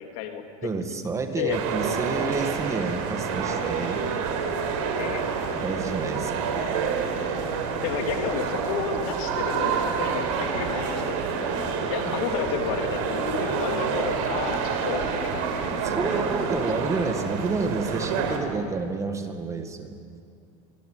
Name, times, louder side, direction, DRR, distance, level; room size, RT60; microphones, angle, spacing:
voice 1, 0.0-0.7 1.4-1.6 5.0-5.3 7.8-15.4 16.1-16.2, left 8 dB, 65° left, 5 dB, 3.4 m, -32 dB
voice 2, 0.6-4.1 5.5-6.5 12.1-12.4 15.8-20.0, right 4 dB, 15° right, 7 dB, 1.9 m, -30 dB
sound 1, 1.5-18.4, right 5 dB, 65° right, 4.6 m, -28 dB
26.0 x 23.0 x 9.4 m, 2.3 s
supercardioid pair, 145°, 18 cm